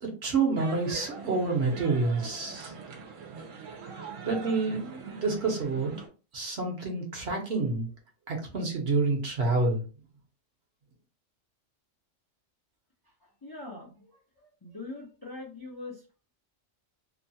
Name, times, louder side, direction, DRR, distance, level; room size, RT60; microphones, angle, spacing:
voice 1, 0.0-2.7 4.2-6.1 6.3-7.9 8.3-9.8, right 3 dB, 60° right, 1 dB, 1.1 m, -28 dB
sound 1, 0.6-6.1, right 5 dB, 85° right, 1.0 m, -43 dB
voice 2, 13.2-16.0, left 2 dB, 30° left, -3 dB, 0.4 m, -43 dB
2.8 x 2.3 x 2.7 m, 0.35 s
omnidirectional pair, 1.3 m